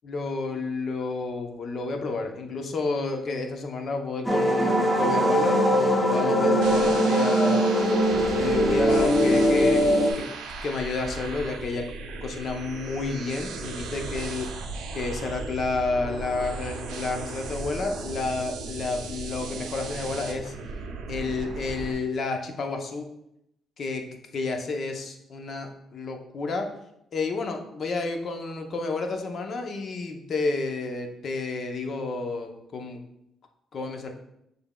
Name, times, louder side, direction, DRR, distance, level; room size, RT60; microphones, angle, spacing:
voice 1, 0.0-7.7 8.3-9.8 10.2-10.3 10.6-11.9 12.2-20.5 21.1-23.1 23.8-26.7 27.1-33.0 33.7-34.1, left 3 dB, 55° left, 4 dB, 0.7 m, -30 dB
sound 1, 4.2-10.1, equal, 5° left, 0.7 m, -21 dB
sound 2, 6.6-21.9, right 4 dB, 85° right, 0.5 m, -36 dB
7.0 x 3.3 x 2.3 m, 0.80 s
cardioid pair, 90°, 0 cm